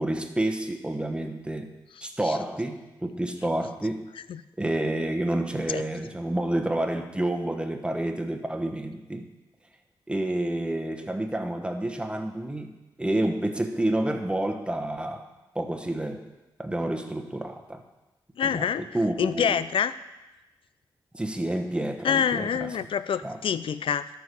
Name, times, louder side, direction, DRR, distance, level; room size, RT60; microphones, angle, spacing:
voice 1, 0.0-1.7 2.0-4.1 4.6-9.3 10.1-15.3 15.5-16.3 16.6-17.8 18.4-19.6 21.1-22.7 23.2-23.4, right 1 dB, 10° right, 4 dB, 1.1 m, -29 dB
voice 2, 18.4-18.9 19.2-19.9 22.0-24.1, left 8 dB, 70° left, 15 dB, 0.4 m, -26 dB
12.5 x 4.8 x 5.4 m, 1.1 s
cardioid pair, 60°, 9 cm